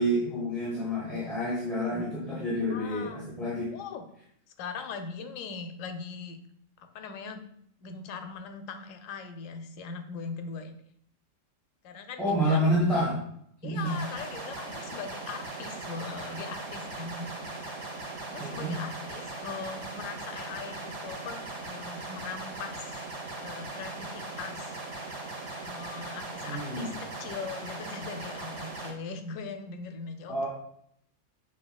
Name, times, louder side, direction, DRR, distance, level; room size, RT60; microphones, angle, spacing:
voice 1, 0.0-3.7 12.2-13.2 13.6-13.8 18.4-18.7 26.4-26.9 30.3-30.5, equal, ahead, -9 dB, 1.1 m, -28 dB
voice 2, 2.7-3.3 3.7-4.0 4.6-6.4 6.8-7.4 7.8-10.7 11.8-12.7 13.6-17.4 18.2-23.1 23.4-24.8 25.6-30.5, left 5 dB, 85° left, 7 dB, 1.0 m, -40 dB
sound 1, 13.8-28.9, right 2 dB, 65° right, 1.5 m, -39 dB
6.4 x 3.0 x 2.3 m, 0.70 s
omnidirectional pair, 1.3 m